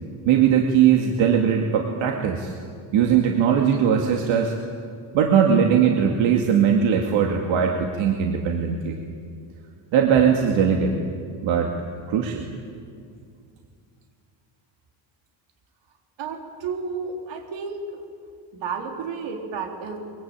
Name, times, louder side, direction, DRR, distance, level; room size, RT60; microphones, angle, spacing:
voice 1, 0.3-2.5 2.9-4.5 5.1-8.9 9.9-11.0 11.4-11.7 12.1-12.5, right 8 dB, 90° right, 2 dB, 2.4 m, -20 dB
voice 2, 16.2-17.8 18.5-20.0, right 5 dB, 70° right, 3 dB, 4.1 m, -31 dB
23.5 x 23.5 x 9.0 m, 2.3 s
cardioid pair, 165°, 45 cm